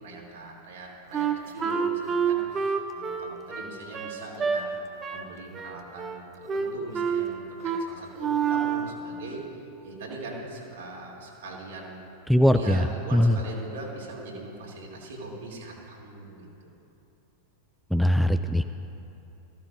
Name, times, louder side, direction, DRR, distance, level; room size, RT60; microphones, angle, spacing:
voice 1, 0.0-4.7 5.1-9.4 9.8-12.0 12.5-16.7, right 2 dB, 60° right, -3 dB, 2.7 m, -41 dB
Wind instrument woodwind instrument, 1.1-4.6 5.0-5.3 5.5-6.2 6.5-7.2 7.6-7.9 8.2-8.9, right 6 dB, 20° right, 0.8 m, -28 dB
voice 2, 12.3-12.8 13.1-13.3 17.9-18.6, equal, ahead, 8 dB, 0.4 m, -20 dB
19.0 x 15.0 x 2.5 m, 2.8 s
figure-of-eight pair, 90°, 0 cm